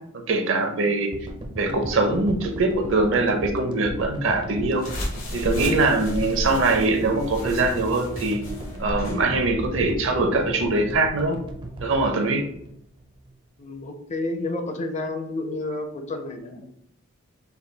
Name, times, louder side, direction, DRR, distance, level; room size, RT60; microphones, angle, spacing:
voice 1, 0.1-1.1 1.6-4.8 5.3-8.4 8.8-11.4 11.8-12.4, right 2 dB, 60° right, 5 dB, 0.6 m, -22 dB
sound 1, 1.1-13.5, right 1 dB, 25° right, 0.4 m, -36 dB
sound 2, 4.8-9.2, left 1 dB, 85° left, 1.6 m, -34 dB
voice 2, 13.6-16.7, left 2 dB, 35° left, 6 dB, 0.5 m, -30 dB
5.6 x 2.2 x 3.3 m, 0.74 s
head